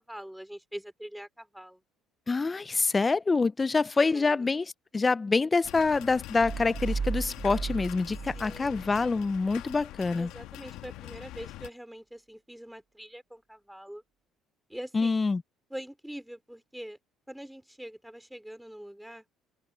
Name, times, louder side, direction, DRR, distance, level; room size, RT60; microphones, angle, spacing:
voice 1, 0.0-1.8 4.1-4.6 8.3-8.8 10.1-14.0 14.7-15.2 15.7-17.0 17.3-19.3, equal, 5° right, 4.7 m, -44 dB
voice 2, 2.3-4.7 4.9-10.3 14.9-15.4, left 4 dB, 25° left, 0.5 m, -26 dB
sound 1, 5.6-11.7, left 15 dB, 75° left, 1.6 m, -44 dB
sound 2, 6.4-9.2, right 5 dB, 35° right, 1.4 m, -35 dB
supercardioid pair, 90°, 0 cm